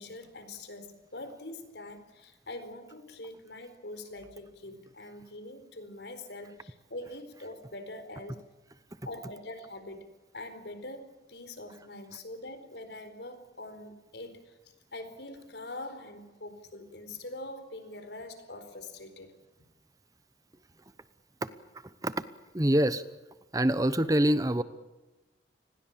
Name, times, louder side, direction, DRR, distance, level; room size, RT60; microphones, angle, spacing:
voice 1, 0.0-8.4 9.0-14.6 14.9-19.3, left 2 dB, 70° left, 9 dB, 4.4 m, -44 dB
voice 2, 22.5-23.0 23.5-24.6, right 1 dB, 20° right, 14 dB, 0.9 m, -25 dB
29.5 x 21.0 x 7.4 m, 1.1 s
head